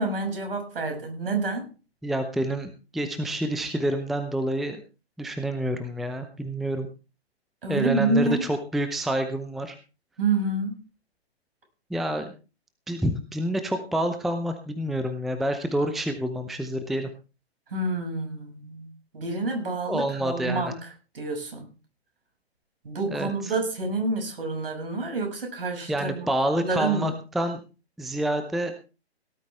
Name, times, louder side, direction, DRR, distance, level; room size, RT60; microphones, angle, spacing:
voice 1, 0.0-1.7 7.6-8.5 10.2-10.7 17.7-18.9 19.1-20.9 21.1-21.7 22.8-26.3 26.6-27.1, right 3 dB, 60° right, 4 dB, 6.6 m, -28 dB
voice 2, 2.0-4.8 5.2-6.9 7.7-9.8 11.9-12.3 12.9-17.1 19.9-20.7 23.1-23.5 25.9-27.6 28.0-28.7, right 1 dB, ahead, 8 dB, 0.7 m, -28 dB
17.5 x 12.5 x 3.5 m, 0.33 s
figure-of-eight pair, 125°, 32 cm